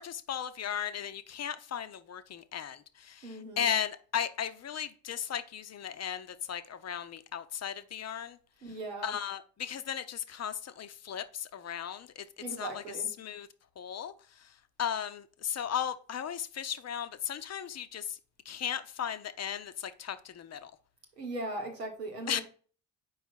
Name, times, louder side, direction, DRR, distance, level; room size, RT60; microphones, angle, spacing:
voice 1, 0.0-8.4 9.0-12.3 12.6-12.8 13.2-13.5 13.8-18.2 18.5-20.7 22.3-22.4, left 8 dB, 35° left, 0.6 m, -36 dB
voice 2, 3.2-3.7 8.6-9.2 12.4-13.1 21.2-22.4, right 2 dB, 90° right, 1.1 m, -39 dB
4.7 x 4.7 x 4.4 m
figure-of-eight pair, 45°, 47 cm